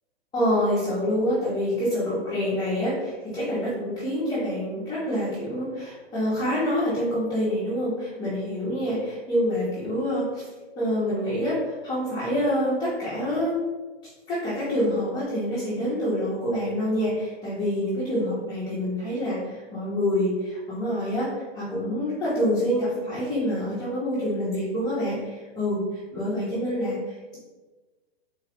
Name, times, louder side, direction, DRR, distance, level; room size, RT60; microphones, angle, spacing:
voice 1, 0.3-10.5 10.8-13.6 14.3-27.4, equal, 15° left, -12 dB, 0.9 m, -26 dB
3.8 x 2.2 x 3.5 m, 1.3 s
hypercardioid pair, 140°, 32 cm